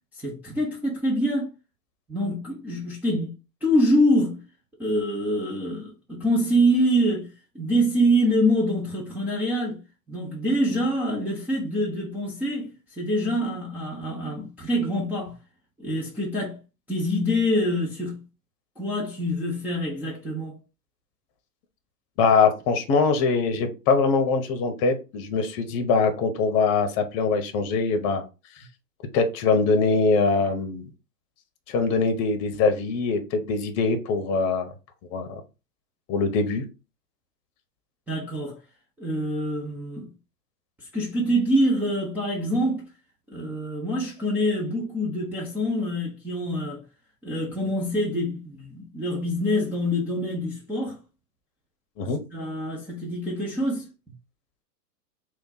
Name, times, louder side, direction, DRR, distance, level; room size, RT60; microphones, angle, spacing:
voice 1, 0.1-1.5 2.1-3.4 3.6-4.4 4.8-9.8 10.1-15.4 15.8-16.6 16.9-18.2 18.8-20.5 38.1-38.6 39.0-40.1 40.8-42.8 43.3-46.8 47.2-51.0 52.3-53.9, equal, 5° right, 0.4 m, -25 dB
voice 2, 22.2-28.2 29.1-30.9 31.7-34.7 35.1-35.4 36.1-36.6 52.0-52.2, left 4 dB, 30° left, 0.8 m, -23 dB
3.5 x 2.4 x 4.0 m
hypercardioid pair, 110°, 50 cm